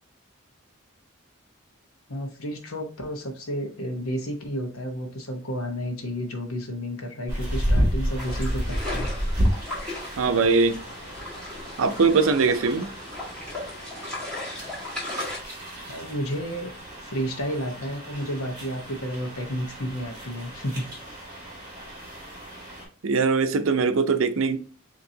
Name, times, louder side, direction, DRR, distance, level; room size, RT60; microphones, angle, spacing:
voice 1, 2.1-9.1 15.9-16.7 17.0-20.8, equal, 90° left, 1.1 m, -31 dB
sound 1, 7.3-22.9, equal, 15° right, 1.9 m, -32 dB
sound 2, 8.2-15.4, left 2 dB, 5° left, 2.0 m, -36 dB
voice 2, 10.2-10.8 11.8-12.9 23.0-24.6, right 4 dB, 75° right, 0.5 m, -21 dB
5.4 x 2.9 x 2.7 m
head